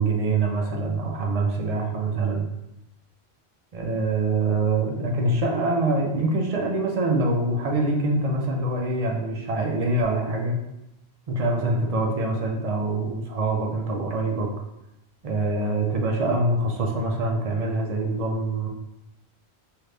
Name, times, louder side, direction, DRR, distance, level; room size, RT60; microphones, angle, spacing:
voice 1, 0.0-2.5 3.7-10.6 11.3-14.5 15.2-18.7, right 2 dB, 55° right, 0 dB, 0.4 m, -24 dB
2.8 x 2.5 x 3.2 m, 0.88 s
omnidirectional pair, 1.1 m